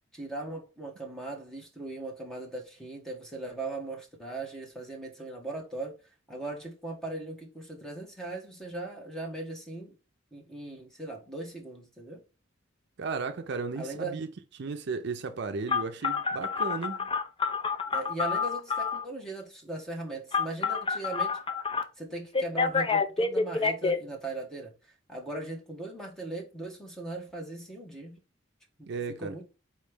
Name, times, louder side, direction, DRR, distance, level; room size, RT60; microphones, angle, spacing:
voice 1, 0.1-6.0 6.3-10.0 10.3-12.2 13.8-14.2 17.9-21.4 22.0-28.2 28.8-29.5, right 2 dB, 5° left, 1.3 m, -39 dB
voice 2, 13.0-14.3 14.6-17.1 28.9-29.4, right 4 dB, 60° right, 0.5 m, -34 dB
Telephone, 15.7-19.0 20.3-21.8 22.3-24.0, left 4 dB, 25° left, 0.6 m, -28 dB
4.4 x 3.1 x 3.4 m
head